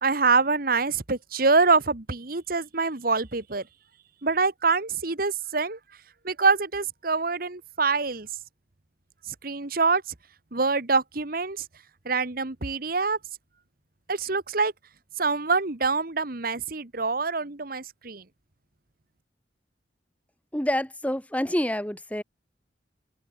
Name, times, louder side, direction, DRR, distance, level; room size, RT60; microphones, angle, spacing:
voice 1, 0.0-3.6 4.2-5.8 6.2-8.3 9.3-10.0 10.5-11.6 12.0-13.2 14.1-14.7 15.2-18.2, right 4 dB, 50° right, 1.6 m, -25 dB
voice 2, 20.5-22.2, left 1 dB, 10° left, 1.5 m, -27 dB
head